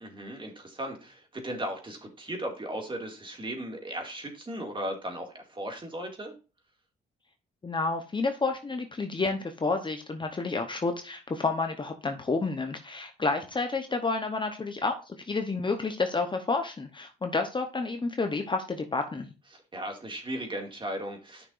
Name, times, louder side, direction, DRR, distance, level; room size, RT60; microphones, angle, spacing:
voice 1, 0.0-6.3 19.5-21.5, right 1 dB, 25° right, 2 dB, 2.2 m, -37 dB
voice 2, 7.6-19.3, left 3 dB, 25° left, 5 dB, 0.9 m, -30 dB
9.7 x 5.9 x 2.5 m, 0.32 s
cardioid pair, 90°, 20 cm